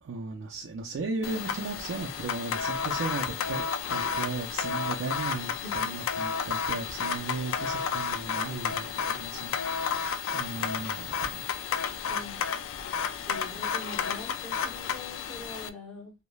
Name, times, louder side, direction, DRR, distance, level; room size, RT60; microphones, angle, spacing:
voice 1, 0.0-10.0 10.3-11.6, right 3 dB, 75° right, 0.4 m, -36 dB
sound 1, 1.2-15.7, left 6 dB, 80° left, 0.3 m, -32 dB
voice 2, 5.6-5.9 12.1-12.4 13.1-16.1, left 2 dB, 5° left, 0.9 m, -43 dB
3.0 x 2.1 x 2.2 m
head